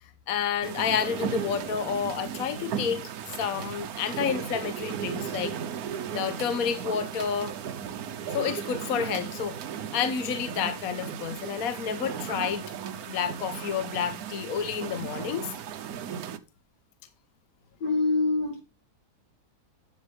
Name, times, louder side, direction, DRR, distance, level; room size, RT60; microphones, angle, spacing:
voice 1, 0.3-5.5 6.1-7.5 8.3-9.6 9.9-12.6 13.1-15.5, left 7 dB, 60° left, 1.3 m, -30 dB
sound 1, 0.6-16.4, right 8 dB, 70° right, 1.3 m, -36 dB
voice 2, 17.8-18.6, left 3 dB, 90° left, 4.7 m, -25 dB
12.0 x 8.1 x 3.3 m
omnidirectional pair, 1.8 m